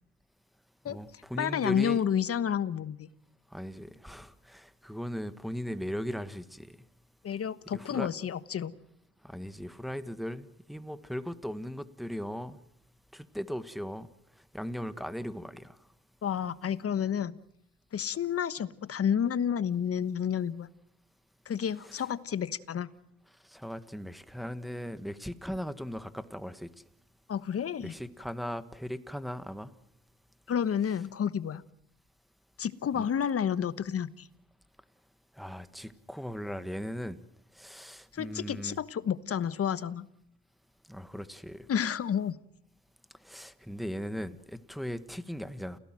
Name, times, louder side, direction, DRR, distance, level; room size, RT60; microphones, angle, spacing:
voice 1, 0.9-2.0 3.5-6.8 7.7-8.1 9.2-12.6 13.1-14.1 14.5-15.8 21.9-22.0 23.5-26.7 27.8-29.7 33.0-33.1 35.4-37.2 37.5-38.8 40.9-41.7 43.2-45.8, equal, ahead, 11 dB, 1.6 m, -38 dB
voice 2, 1.4-3.1 7.2-8.7 16.2-17.3 17.9-20.7 21.5-22.9 27.3-28.0 30.5-31.6 32.6-34.3 38.1-40.1 41.7-42.4, left 8 dB, 50° left, 15 dB, 1.2 m, -30 dB
29.5 x 17.0 x 7.7 m, 0.74 s
cardioid pair, 90°, 30 cm